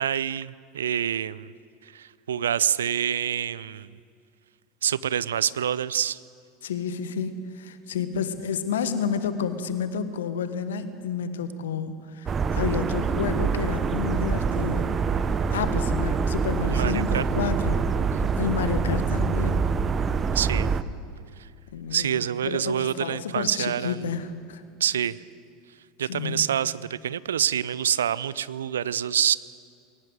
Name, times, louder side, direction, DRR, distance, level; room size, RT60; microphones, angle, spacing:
voice 1, 0.0-1.5 1.8-4.0 4.8-6.2 16.7-17.2 20.3-20.7 21.4-21.5 21.9-24.0 24.8-25.2 26.0-29.4, right 9 dB, 75° right, 19 dB, 0.5 m, -26 dB
voice 2, 6.6-14.9 15.5-17.8 18.4-19.7 21.7-24.6 26.0-26.5, left 6 dB, 70° left, 11 dB, 1.5 m, -30 dB
sound 1, 12.3-20.8, right 5 dB, 30° right, 0.9 m, -25 dB
22.0 x 18.0 x 7.9 m, 2.3 s
figure-of-eight pair, 80°, 0 cm